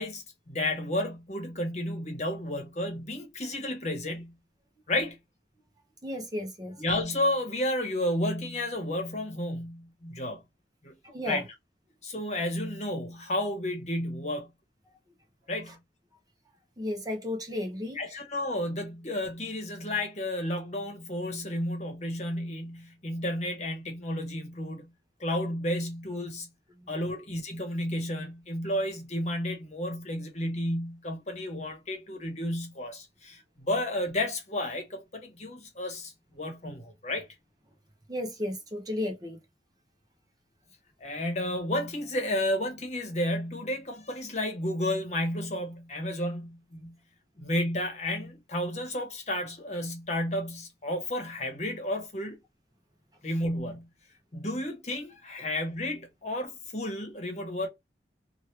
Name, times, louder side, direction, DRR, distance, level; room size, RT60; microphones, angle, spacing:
voice 1, 0.0-4.3 4.9-5.2 6.8-10.4 10.8-10.9 11.2-11.4 12.0-14.5 15.5-15.7 17.9-24.9 25.2-26.5 26.9-37.3 41.0-46.9 47.4-52.4 53.2-53.9 54.3-57.7, left 1 dB, 40° left, 1.0 m, -32 dB
voice 2, 6.0-6.8 11.0-11.4 15.7-15.8 16.8-18.2 26.7-26.9 38.1-39.4, left 1 dB, 20° right, 0.7 m, -34 dB
3.0 x 2.3 x 3.2 m
head